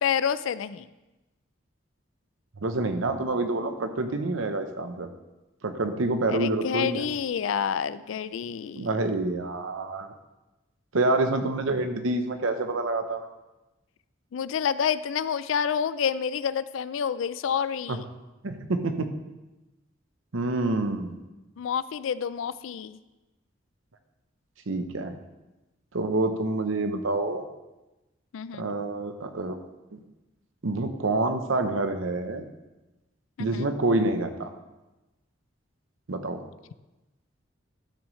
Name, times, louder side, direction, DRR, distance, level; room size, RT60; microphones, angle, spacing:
voice 1, 0.0-0.9 6.3-8.9 14.3-18.0 21.6-23.0 28.3-28.7 33.4-33.7, left 7 dB, 80° left, 16 dB, 0.3 m, -28 dB
voice 2, 2.6-5.1 5.6-7.1 8.7-10.1 10.9-13.3 17.9-18.0 18.4-19.1 20.3-21.1 24.7-25.2 25.9-27.4 28.5-29.6 29.9-30.0 30.6-32.4 33.4-34.5 36.1-36.4, right 2 dB, 85° right, 7 dB, 0.8 m, -27 dB
13.0 x 6.2 x 3.2 m, 1.0 s
head